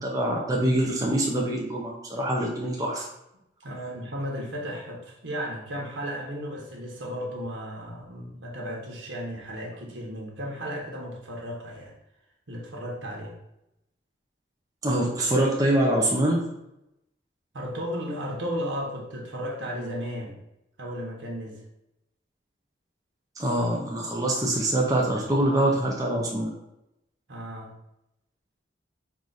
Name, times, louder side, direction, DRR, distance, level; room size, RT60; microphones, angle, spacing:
voice 1, 0.0-3.1 14.8-16.4 23.4-26.5, right 1 dB, 20° right, -2 dB, 0.5 m, -24 dB
voice 2, 3.6-11.9 12.5-13.3 17.5-20.4 20.8-21.6 27.3-27.7, equal, 85° right, -1 dB, 1.1 m, -34 dB
4.8 x 2.5 x 4.0 m, 0.85 s
head